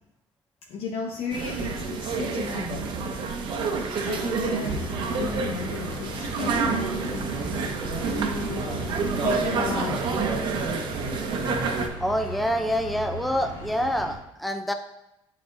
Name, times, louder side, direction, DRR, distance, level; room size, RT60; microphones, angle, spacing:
voice 1, 0.7-2.9 4.0-4.8 5.2-7.3 8.1-8.7 9.1-10.0, left 5 dB, 75° left, -1 dB, 0.9 m, -34 dB
sound 1, 1.3-11.9, right 4 dB, 45° right, 0.8 m, -28 dB
sound 2, 4.6-14.2, left 2 dB, 30° left, 1.3 m, -39 dB
voice 2, 12.0-14.7, equal, ahead, 6 dB, 0.4 m, -26 dB
10.5 x 4.2 x 2.6 m, 0.90 s
cardioid pair, 175°, 11 cm